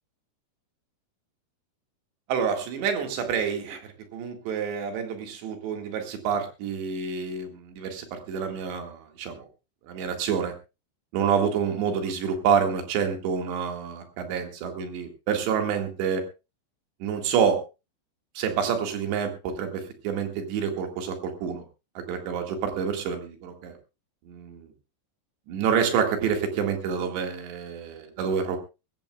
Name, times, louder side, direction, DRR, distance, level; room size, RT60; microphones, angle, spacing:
voice 1, 2.3-9.5 9.9-10.5 11.1-16.2 17.0-17.6 18.4-21.7 22.0-23.8 24.3-24.7 25.5-28.6, right 7 dB, 80° right, 5 dB, 4.1 m, -28 dB
21.0 x 15.5 x 2.3 m, 0.28 s
omnidirectional pair, 5.0 m